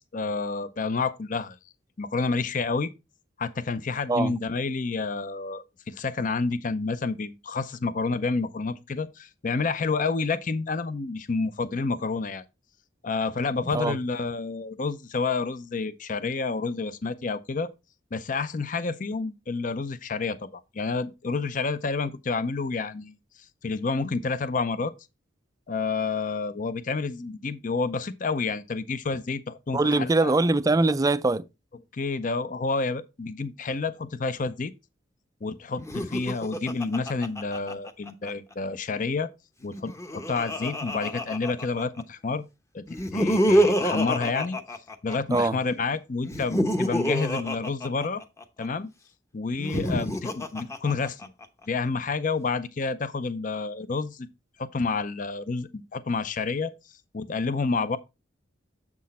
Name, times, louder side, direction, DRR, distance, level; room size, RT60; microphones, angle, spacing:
voice 1, 0.0-1.6 2.0-2.9 3.4-12.4 13.0-17.7 18.1-23.1 23.6-24.9 25.7-30.3 31.9-34.7 35.4-39.3 39.6-42.4 42.7-44.6 45.0-48.2 48.6-48.9 49.3-51.3 51.7-54.3 54.6-56.7 57.1-58.0, left 4 dB, 45° left, 0.5 m, -29 dB
voice 2, 29.7-31.5 45.3-45.6, right 2 dB, 20° right, 0.3 m, -22 dB
Laughter, 35.8-38.3 39.6-42.0 42.9-45.4 46.2-48.7 49.5-51.5, equal, 15° left, 0.8 m, -27 dB
7.5 x 6.2 x 4.1 m
head